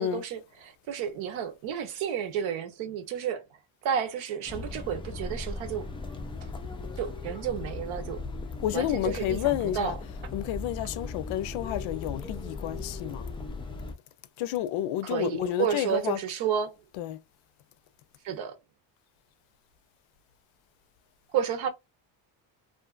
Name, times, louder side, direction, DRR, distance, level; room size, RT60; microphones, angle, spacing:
voice 1, 0.0-3.4 3.8-5.9 7.0-8.2 8.7-10.0 15.0-16.7 18.2-18.6 21.3-21.7, right 8 dB, 70° right, 0.9 m, -31 dB
sound 1, 4.5-13.9, left 3 dB, 10° left, 0.3 m, -38 dB
voice 2, 8.6-13.3 14.4-16.5 16.9-17.2, left 12 dB, 75° left, 0.6 m, -30 dB
2.5 x 2.5 x 2.4 m
cardioid pair, 115°, 48 cm